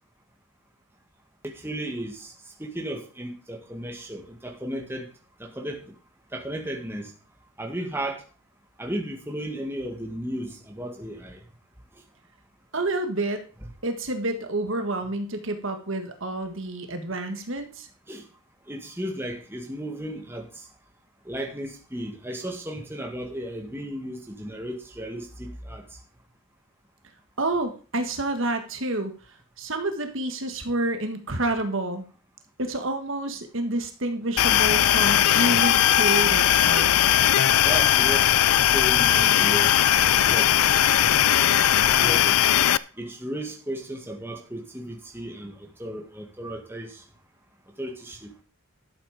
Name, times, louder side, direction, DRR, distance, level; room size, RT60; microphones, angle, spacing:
voice 1, 1.4-2.3 2.6-5.1 5.4-5.8 6.3-7.1 7.6-8.2 8.8-11.4 13.6-13.7 18.1-18.3 18.7-20.6 21.3-25.8 37.6-39.8 40.3-40.8 42.0-42.5 43.0-47.0 47.8-48.3, right 1 dB, 10° right, 2 dB, 1.9 m, -34 dB
voice 2, 12.7-13.4 13.8-17.9 27.4-29.1 29.6-32.0 32.6-36.9, right 2 dB, 60° right, 6 dB, 1.7 m, -29 dB
sound 1, 34.4-42.8, left 11 dB, 80° left, 0.5 m, -19 dB
12.5 x 7.7 x 5.0 m, 0.37 s
head